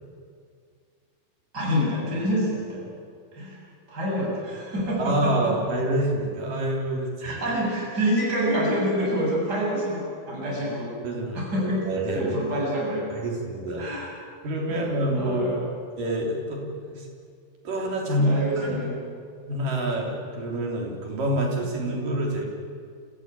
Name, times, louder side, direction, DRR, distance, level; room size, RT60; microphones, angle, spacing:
voice 1, 1.5-2.8 3.3-3.6 3.9-5.5 7.2-10.9 11.3-11.8 12.1-13.1 13.8-14.1 14.7-15.6 18.2-18.9, equal, 25° right, -4 dB, 8.1 m, -27 dB
voice 2, 5.0-7.4 11.0-11.4 11.8-12.3 13.1-13.9 14.4-15.5 16.0-17.1 17.6-18.3 18.6-19.0 19.5-22.5, right 1 dB, 60° right, -1 dB, 5.0 m, -27 dB
28.0 x 16.0 x 9.1 m, 2.1 s
omnidirectional pair, 4.5 m